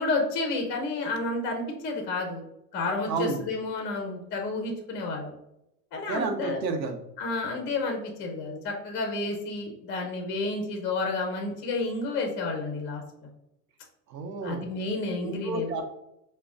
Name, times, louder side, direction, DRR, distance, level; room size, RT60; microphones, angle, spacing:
voice 1, 0.0-2.4 2.7-5.3 5.9-6.6 7.2-13.3 14.4-15.7, left 3 dB, 25° left, 3 dB, 0.5 m, -30 dB
voice 2, 3.1-3.4 6.1-7.0 14.1-14.6 15.2-15.8, right 3 dB, 80° right, 6 dB, 0.8 m, -30 dB
4.9 x 2.2 x 2.4 m, 0.84 s
hypercardioid pair, 125°, 49 cm